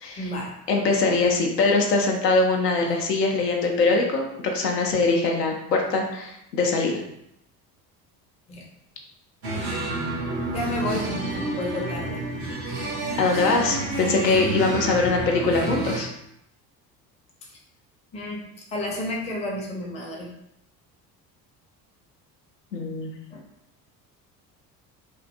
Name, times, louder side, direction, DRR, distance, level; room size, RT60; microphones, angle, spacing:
voice 1, 0.2-0.5 2.9-3.0 8.5-8.6 10.5-11.1 11.5-12.2 17.4-17.5 18.1-18.4 18.7-20.3 23.3-23.4, left 1 dB, 15° left, -1 dB, 0.4 m, -31 dB
voice 2, 0.7-7.0 13.2-16.1 22.7-23.2, left 3 dB, 80° left, 1 dB, 0.5 m, -22 dB
sound 1, 9.4-16.0, right 2 dB, 85° right, 0.6 m, -29 dB
2.5 x 2.2 x 2.5 m, 0.78 s
figure-of-eight pair, 60°, 48 cm